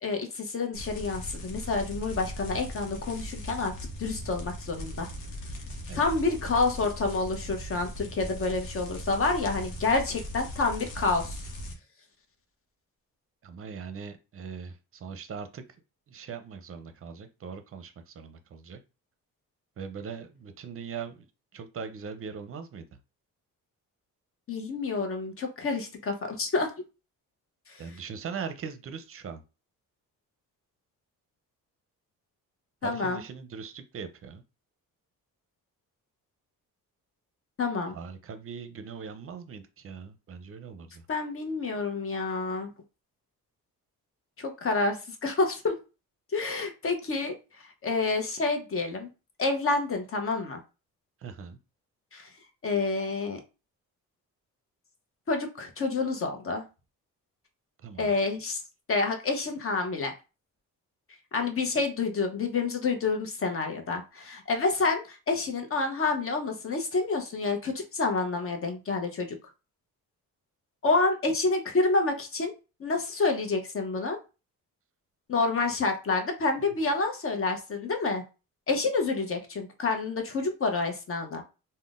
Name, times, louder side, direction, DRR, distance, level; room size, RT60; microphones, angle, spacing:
voice 1, 0.0-3.7 4.0-5.1 5.9-11.4 24.5-26.7 27.7-28.0 32.8-33.2 37.6-37.9 41.1-42.7 44.4-45.8 46.3-47.3 47.8-49.1 49.4-50.6 52.1-52.3 52.6-53.4 55.3-56.6 58.0-58.6 58.9-60.1 61.3-69.4 70.8-72.5 72.8-74.2 75.3-78.2 78.7-81.4, left 3 dB, 40° left, 4 dB, 0.8 m, -28 dB
sound 1, 0.7-11.7, equal, 85° left, 0.9 m, -39 dB
voice 2, 13.4-15.6 16.1-18.8 19.8-21.1 21.5-22.8 27.8-29.4 32.8-34.4 37.9-41.0 51.2-51.6 57.8-58.2, right 6 dB, 40° right, 9 dB, 0.6 m, -40 dB
3.6 x 2.2 x 2.5 m, 0.30 s
cardioid pair, 85°, 34 cm